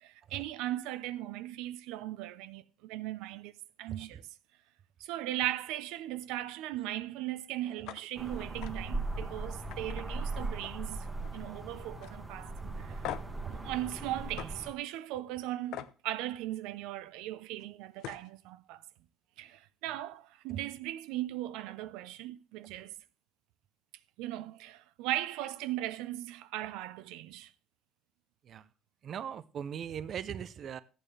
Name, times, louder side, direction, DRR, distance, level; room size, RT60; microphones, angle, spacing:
voice 1, 0.0-4.2 5.0-11.1 11.3-13.1 13.5-18.8 19.4-22.9 24.2-27.5, right 14 dB, 85° right, 0.6 m, -38 dB
voice 2, 3.9-4.2 7.7-7.9 12.6-13.6 20.5-20.6 22.6-22.9 28.4-28.7 29.0-30.8, right 8 dB, 40° right, 0.6 m, -41 dB
sound 1, 7.8-8.0 8.4-8.7 9.1-9.3 9.7-10.9 11.2-11.6 12.0-12.1 13.0-13.4 14.4-14.5 15.7-15.9 17.6-17.7 18.0-18.3, left 11 dB, 70° left, 0.7 m, -42 dB
sound 2, 8.2-14.7, right 2 dB, 10° right, 1.3 m, -39 dB
13.5 x 9.0 x 3.3 m
cardioid pair, 160°, 0 cm